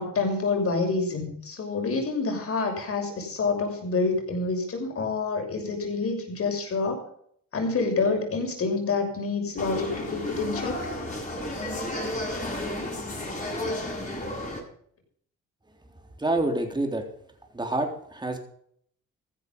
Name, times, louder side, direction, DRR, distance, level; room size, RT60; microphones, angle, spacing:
voice 1, 0.0-7.0 7.5-10.8, left 4 dB, 50° left, 3 dB, 6.7 m, -27 dB
sound 1, 9.6-14.6, left 1 dB, 25° left, 7.7 m, -32 dB
voice 2, 16.2-17.0 17.5-18.4, right 2 dB, 15° right, 3 dB, 3.7 m, -27 dB
15.0 x 12.0 x 5.5 m, 0.64 s
cardioid pair, 90°, 30 cm